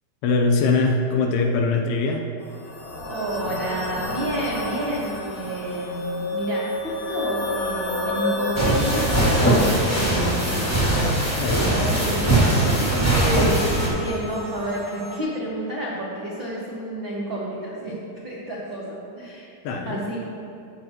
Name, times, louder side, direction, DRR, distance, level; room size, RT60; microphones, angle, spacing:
voice 1, 0.2-2.3 11.3-11.8 19.6-20.0, left 3 dB, 80° left, 3 dB, 2.5 m, -22 dB
sound 1, 2.4-15.2, left 2 dB, 60° left, 1.7 m, -31 dB
voice 2, 3.1-10.7 11.6-17.9 18.2-19.5 19.8-20.2, right 1 dB, 75° right, -7 dB, 1.1 m, -30 dB
sound 2, 8.5-13.9, right 1 dB, 10° left, 0.7 m, -21 dB
14.5 x 8.9 x 3.0 m, 2.6 s
omnidirectional pair, 4.9 m